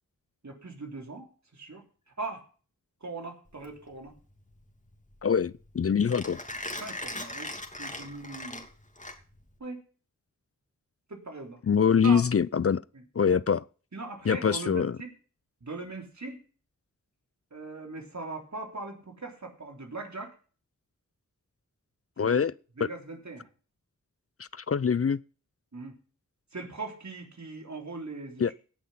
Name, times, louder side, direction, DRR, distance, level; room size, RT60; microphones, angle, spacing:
voice 1, 0.4-1.8 2.2-2.5 3.0-4.1 6.8-7.5 7.8-8.6 9.6-9.8 11.1-11.6 12.0-12.2 13.2-13.4 13.9-15.1 15.6-16.4 17.5-20.3 22.2-22.4 22.8-23.5 25.7-26.0 26.5-28.5, right 3 dB, 60° right, 3.5 m, -40 dB
Mechanisms, 3.5-9.6, left 1 dB, 25° left, 2.8 m, -40 dB
voice 2, 5.2-6.4 11.6-12.8 13.2-13.6 14.3-15.0 22.2-22.5 22.8-22.9 24.4-25.2 28.4-28.5, left 6 dB, 45° left, 0.5 m, -24 dB
17.0 x 6.2 x 5.6 m
cardioid pair, 45°, 32 cm